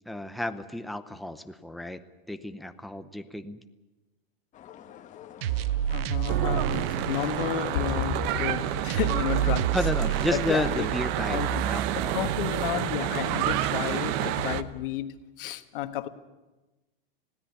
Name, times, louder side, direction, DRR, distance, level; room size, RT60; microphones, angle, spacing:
voice 1, 0.1-2.0 2.3-3.6 9.7-12.2, left 1 dB, ahead, 9 dB, 0.7 m, -32 dB
sound 1, 4.5-12.2, left 10 dB, 25° left, 1.3 m, -48 dB
sound 2, 5.4-12.4, right 12 dB, 80° right, 0.7 m, -30 dB
voice 2, 5.9-9.7 10.3-10.9 11.3-11.6 12.1-16.1, left 11 dB, 65° left, 9 dB, 1.6 m, -31 dB
Church bell / Traffic noise roadway noise, 6.3-14.6, right 12 dB, 45° right, 0.9 m, -29 dB
20.5 x 16.5 x 9.6 m, 1.1 s
supercardioid pair, 140°, 29 cm